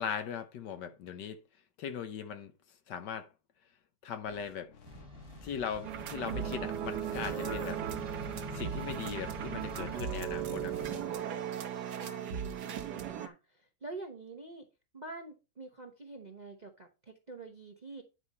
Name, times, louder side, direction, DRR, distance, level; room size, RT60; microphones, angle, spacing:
voice 1, 0.0-1.4 1.8-2.5 2.9-3.3 4.0-4.7 5.4-7.8 8.5-11.0, left 7 dB, 65° left, 1.4 m, -39 dB
sound 1, 4.2-11.1, left 6 dB, 50° left, 1.1 m, -54 dB
sound 2, 4.8-10.9, equal, 15° right, 3.2 m, -47 dB
sound 3, 5.8-13.3, right 9 dB, 60° right, 1.3 m, -37 dB
voice 2, 7.3-7.9 11.9-14.7 14.9-18.0, right 2 dB, 35° right, 0.7 m, -46 dB
9.8 x 5.1 x 4.1 m
omnidirectional pair, 2.1 m